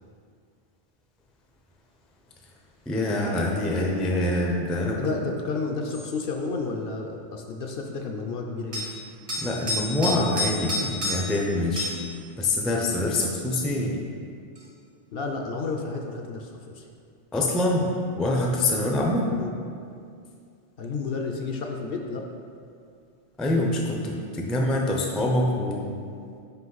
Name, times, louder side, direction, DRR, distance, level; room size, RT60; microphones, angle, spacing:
voice 1, 2.9-5.0 9.4-11.9 12.4-14.0 17.3-19.3 23.4-25.9, left 1 dB, ahead, -1 dB, 0.3 m, -25 dB
voice 2, 5.0-8.9 15.1-16.9 19.4-19.5 20.8-22.3, left 4 dB, 65° left, 2 dB, 0.7 m, -31 dB
sound 1, 5.9-6.1 8.7-8.9 9.3-11.4 11.8-12.0 14.6-14.7, left 1 dB, 70° right, 1.6 m, -29 dB
5.7 x 5.0 x 4.0 m, 2.4 s
omnidirectional pair, 1.2 m